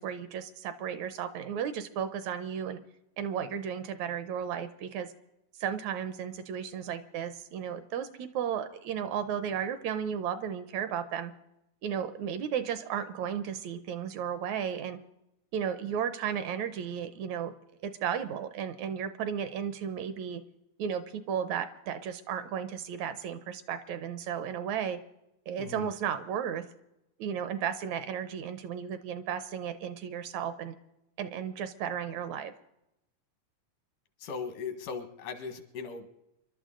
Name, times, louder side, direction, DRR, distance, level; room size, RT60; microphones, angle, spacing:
voice 1, 0.0-2.8 3.2-5.1 5.6-11.3 11.8-15.0 15.5-17.5 17.8-20.4 20.8-25.0 25.5-26.7 27.2-30.8 31.2-32.5, right 8 dB, 75° right, 11 dB, 2.0 m, -34 dB
voice 2, 34.2-36.1, left 5 dB, 80° left, 7 dB, 3.0 m, -38 dB
27.0 x 12.0 x 3.8 m, 0.88 s
omnidirectional pair, 3.6 m